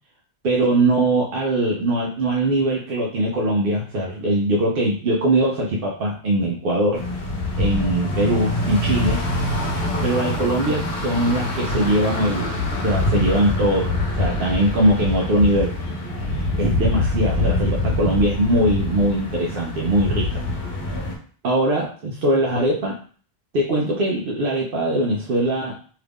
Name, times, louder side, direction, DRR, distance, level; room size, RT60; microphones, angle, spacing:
voice 1, 0.4-7.0 7.6-9.2 10.0-12.5 12.8-15.7 16.6-20.4 21.4-22.9 23.5-25.8, right 1 dB, 65° right, -2 dB, 0.8 m, -21 dB
sound 1, 6.9-21.2, left 2 dB, 65° left, 1.0 m, -24 dB
2.8 x 2.4 x 3.4 m, 0.43 s
omnidirectional pair, 1.1 m